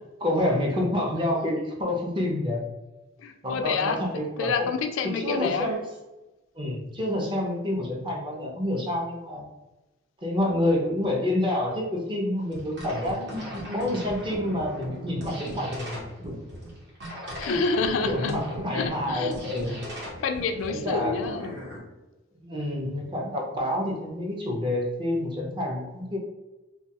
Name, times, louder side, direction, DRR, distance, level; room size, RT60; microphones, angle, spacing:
voice 1, 0.2-2.6 3.4-4.7 5.0-5.8 6.6-9.5 10.2-16.4 18.0-19.8 20.7-21.1 22.4-26.2, left 1 dB, 25° right, -2 dB, 0.6 m, -28 dB
voice 2, 3.2-4.0 4.4-5.7 17.4-18.3 18.7-19.4 19.7-19.8 20.2-21.6, left 4 dB, 75° left, 6 dB, 0.3 m, -28 dB
sound 1, 12.4-21.8, equal, 65° right, 0.9 m, -38 dB
2.3 x 2.2 x 2.8 m, 1.1 s
head